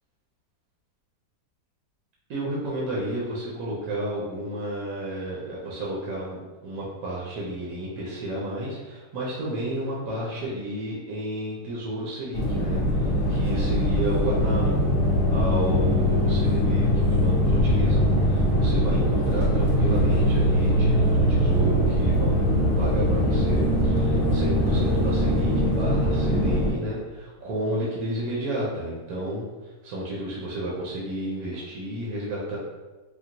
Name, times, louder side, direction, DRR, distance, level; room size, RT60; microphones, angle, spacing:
voice 1, 2.3-14.9 15.3-22.5 22.8-32.6, right 1 dB, 65° right, -5 dB, 1.0 m, -32 dB
sound 1, 12.3-26.7, equal, 60° left, 0.6 m, -22 dB
3.6 x 2.1 x 2.8 m, 1.3 s
omnidirectional pair, 1.9 m